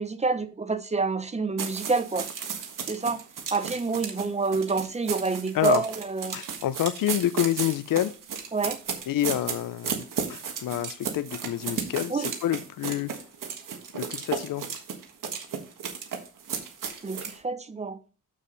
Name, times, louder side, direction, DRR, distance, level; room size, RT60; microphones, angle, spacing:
voice 1, 0.0-2.3 2.8-3.2 3.5-6.4 8.5-8.8 12.1-12.3 17.0-18.0, right 4 dB, 20° right, 0.7 m, -28 dB
sound 1, 1.6-17.4, right 6 dB, 75° right, 1.5 m, -34 dB
voice 2, 6.3-8.1 9.1-13.1 13.9-14.7, left 12 dB, 80° left, 0.6 m, -28 dB
7.2 x 6.5 x 3.9 m
wide cardioid pair, 135°, 33 cm